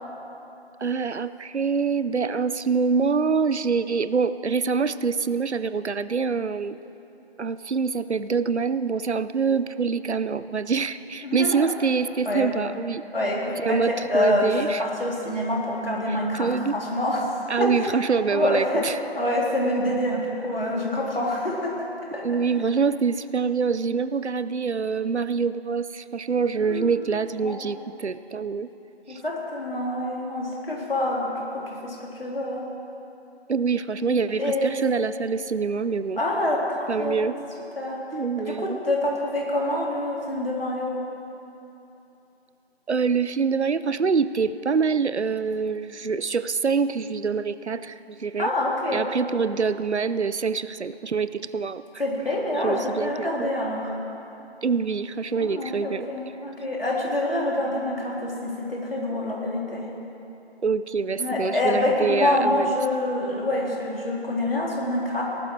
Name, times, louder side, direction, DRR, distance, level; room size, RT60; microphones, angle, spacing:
voice 1, 0.8-6.8 7.4-13.0 13.6-14.8 16.1-16.7 17.5-19.0 22.2-28.7 29.1-29.2 33.5-36.2 36.9-37.4 38.1-38.8 42.9-48.5 48.9-51.8 52.6-53.5 54.6-56.1 60.6-62.7, right 5 dB, 85° right, 14 dB, 0.7 m, -25 dB
voice 2, 11.2-11.7 12.2-12.5 13.1-17.2 17.6-17.7 18.3-22.2 26.5-26.9 27.4-27.7 29.1-32.6 34.0-34.8 36.2-37.3 37.7-38.0 38.4-41.0 48.4-49.0 52.0-53.9 55.4-59.9 61.2-65.2, left 1 dB, 60° left, -3 dB, 3.4 m, -26 dB
19.0 x 12.5 x 4.6 m, 2.9 s
figure-of-eight pair, 175°, 33 cm